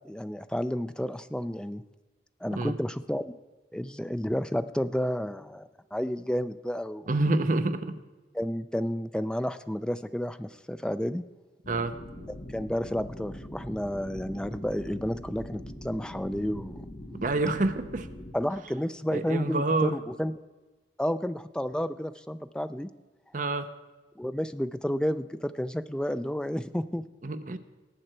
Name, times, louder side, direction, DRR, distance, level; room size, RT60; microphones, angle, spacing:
voice 1, 0.0-1.8 2.4-3.3 3.7-7.1 8.3-11.2 12.5-16.8 18.3-20.3 21.0-22.9 24.2-27.0, equal, 5° left, 11 dB, 0.3 m, -31 dB
voice 2, 7.1-8.0 11.7-12.0 17.1-18.1 19.1-20.0 23.3-23.7 27.2-27.6, right 2 dB, 45° right, 9 dB, 0.7 m, -27 dB
sound 1, 11.6-18.3, left 1 dB, 45° left, 1.3 m, -42 dB
18.5 x 7.7 x 4.4 m, 1.2 s
head